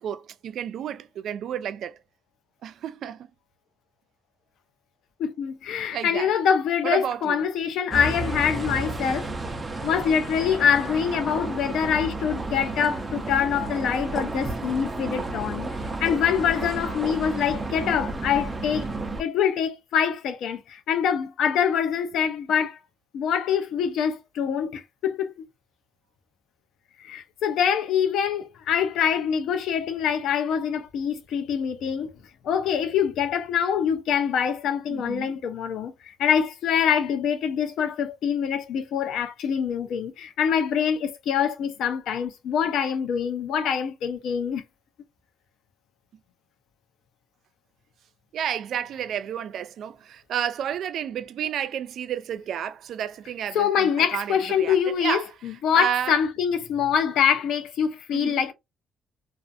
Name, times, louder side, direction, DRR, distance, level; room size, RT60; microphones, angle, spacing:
voice 1, 0.0-2.0 2.6-3.3 5.9-6.3 6.8-7.4 34.9-35.4 48.3-55.2 55.7-56.1 58.1-58.4, right 9 dB, 70° right, 0.3 m, -31 dB
voice 2, 5.2-9.3 9.8-15.7 16.0-18.9 19.2-22.8 23.1-25.5 27.0-32.1 32.4-35.9 36.2-44.6 53.5-58.5, left 8 dB, 80° left, 0.5 m, -25 dB
sound 1, 7.9-19.2, right 2 dB, 25° right, 0.6 m, -32 dB
2.4 x 2.4 x 2.5 m
cardioid pair, 90°, 0 cm